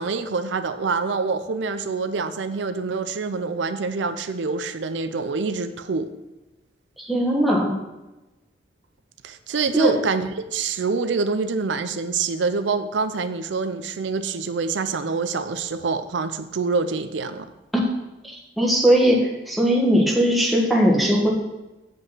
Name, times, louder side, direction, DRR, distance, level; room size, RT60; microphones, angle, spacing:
voice 1, 0.0-6.1 9.2-17.5, right 4 dB, 85° right, 10 dB, 0.5 m, -26 dB
voice 2, 7.0-7.7 9.7-9.9 17.7-17.8 18.2-21.3, equal, ahead, -2 dB, 1.4 m, -19 dB
7.9 x 5.4 x 5.7 m, 1.1 s
head